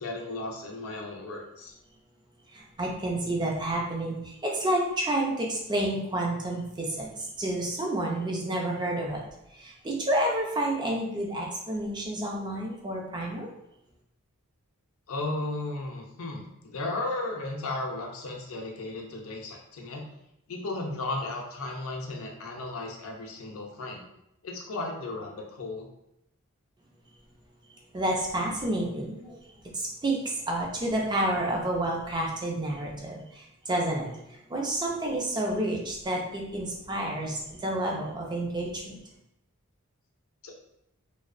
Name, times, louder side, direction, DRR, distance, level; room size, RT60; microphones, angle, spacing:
voice 1, 0.0-1.7 15.1-20.0 20.5-24.0 24.4-25.9 40.4-40.5, left 2 dB, 65° left, 1 dB, 0.5 m, -35 dB
voice 2, 2.5-9.2 9.5-13.5 27.9-29.4 29.7-39.0, right 1 dB, 20° right, -1 dB, 0.4 m, -30 dB
2.7 x 2.0 x 2.4 m, 0.83 s
head